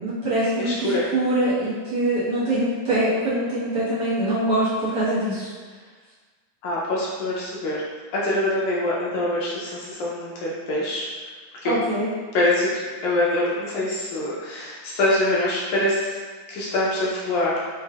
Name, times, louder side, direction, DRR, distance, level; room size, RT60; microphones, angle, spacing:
voice 1, 0.0-5.5 11.6-12.1, right 1 dB, 55° right, -12 dB, 1.7 m, -23 dB
voice 2, 0.6-1.0 6.6-7.8 8.1-11.1 11.6-11.7 12.3-16.2 16.5-17.5, left 1 dB, 75° left, -6 dB, 1.9 m, -24 dB
6.1 x 3.1 x 2.3 m, 1.4 s
omnidirectional pair, 3.7 m